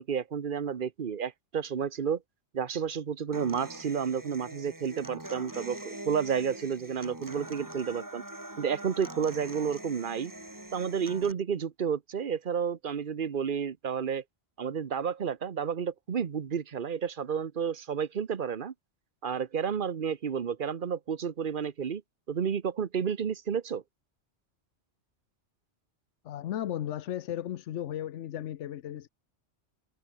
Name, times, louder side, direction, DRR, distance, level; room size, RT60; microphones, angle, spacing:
voice 1, 0.0-2.2 2.5-8.2 8.6-10.3 10.7-14.2 14.6-18.7 19.2-22.0 22.3-23.8, right 7 dB, 50° right, 1.1 m, -31 dB
Human voice / Acoustic guitar, 3.3-11.3, right 1 dB, 15° right, 2.5 m, -43 dB
voice 2, 26.2-29.1, left 11 dB, 85° left, 1.0 m, -35 dB
omnidirectional pair, 1.2 m